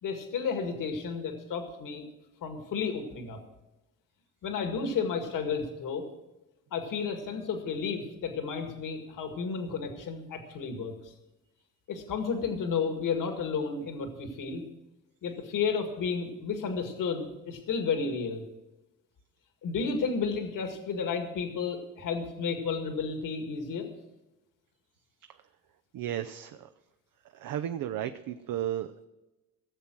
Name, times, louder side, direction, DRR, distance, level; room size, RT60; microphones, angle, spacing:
voice 1, 0.0-2.0 2.4-3.4 4.4-6.0 6.7-11.1 11.9-14.6 15.2-18.4 19.6-23.9, left 5 dB, 70° left, 5 dB, 2.0 m, -32 dB
voice 2, 25.9-26.7 27.3-29.1, right 11 dB, 75° right, 9 dB, 0.7 m, -34 dB
16.5 x 7.4 x 6.1 m, 1.0 s
cardioid pair, 110°, 33 cm